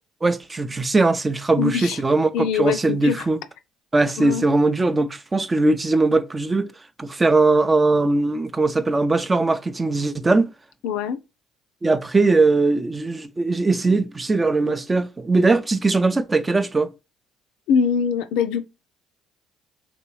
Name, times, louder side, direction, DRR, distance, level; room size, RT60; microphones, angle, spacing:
voice 1, 0.2-3.4 3.9-6.7 7.0-10.5 11.8-16.9, right 3 dB, 25° right, 0.5 m, -20 dB
voice 2, 1.6-2.0 2.3-3.2 4.2-4.5 10.8-11.2 17.7-18.6, left 7 dB, 75° left, 0.3 m, -23 dB
3.0 x 3.0 x 3.1 m
hypercardioid pair, 60°, 0 cm